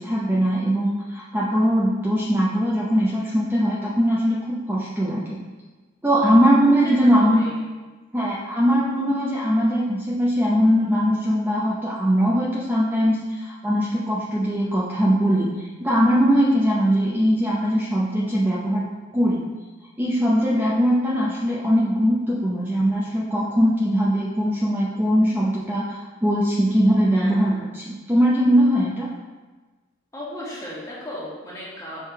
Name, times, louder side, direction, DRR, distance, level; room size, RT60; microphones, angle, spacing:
voice 1, 0.0-5.4 6.0-7.4 8.1-18.8 19.1-19.4 20.0-29.1, equal, 10° right, -6 dB, 0.7 m, -21 dB
voice 2, 6.8-7.6 27.1-27.7 30.1-32.0, left 1 dB, 15° left, -7 dB, 1.7 m, -36 dB
6.4 x 3.5 x 4.6 m, 1.3 s
head